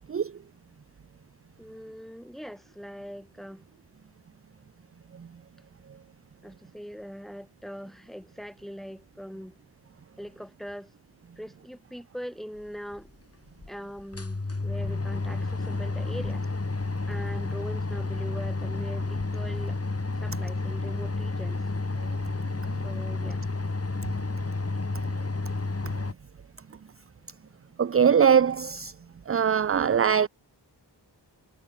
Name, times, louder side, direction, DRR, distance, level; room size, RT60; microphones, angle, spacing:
voice 1, 1.6-3.6 6.4-9.6 10.2-10.9 11.4-13.1 13.7-16.5 17.1-19.8 20.2-21.6 22.8-23.5, equal, ahead, 5.5 m, -41 dB
sound 1, 12.9-13.0 13.6-13.7 14.0-26.1, left 3 dB, 35° left, 3.6 m, -31 dB
voice 2, 27.8-28.9 29.3-30.3, right 7 dB, 35° right, 0.5 m, -21 dB
wide cardioid pair, 95°, 43 cm